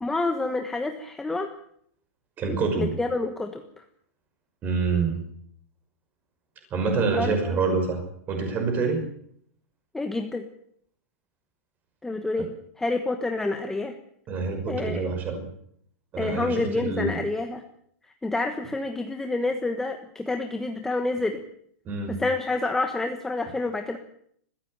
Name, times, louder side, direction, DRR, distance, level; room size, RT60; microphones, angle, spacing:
voice 1, 0.0-1.5 2.5-3.6 7.1-7.6 9.9-10.5 12.0-12.5 12.8-13.9 14.7-15.0 16.2-17.6 18.2-21.4 22.1-24.0, left 2 dB, 5° left, 5 dB, 1.3 m, -28 dB
voice 2, 2.4-2.9 4.6-5.2 6.7-8.0 8.3-9.0 12.4-12.5 14.3-15.5 16.1-17.2 21.8-22.2, right 4 dB, 20° right, 5 dB, 5.9 m, -26 dB
22.0 x 15.5 x 8.9 m, 0.68 s
supercardioid pair, 165°, 8 cm